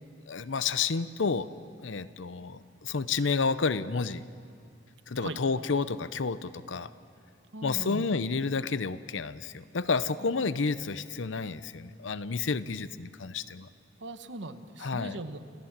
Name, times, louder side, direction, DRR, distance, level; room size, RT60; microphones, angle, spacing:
voice 1, 0.3-1.5 1.8-4.2 5.1-6.9 7.6-13.7 14.8-15.2, left 4 dB, 75° left, 14 dB, 0.7 m, -30 dB
voice 2, 7.5-8.1 14.0-15.4, right 2 dB, 65° right, 9 dB, 1.1 m, -39 dB
29.5 x 14.5 x 7.4 m, 2.2 s
head